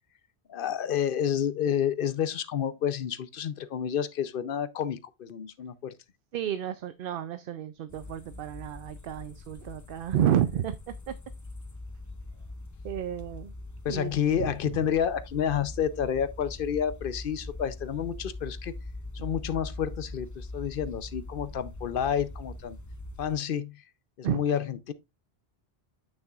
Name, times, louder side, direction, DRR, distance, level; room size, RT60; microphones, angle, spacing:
voice 1, 0.5-5.9 13.8-18.7 19.1-22.8 23.2-23.8 24.2-24.9, left 8 dB, 60° left, 0.8 m, -29 dB
voice 2, 6.3-11.1 12.8-13.5 13.9-14.1 24.2-24.4, right 10 dB, 65° right, 0.7 m, -30 dB
sound 1, 7.9-23.3, left 2 dB, 25° left, 0.5 m, -42 dB
8.9 x 6.7 x 2.4 m
omnidirectional pair, 1.1 m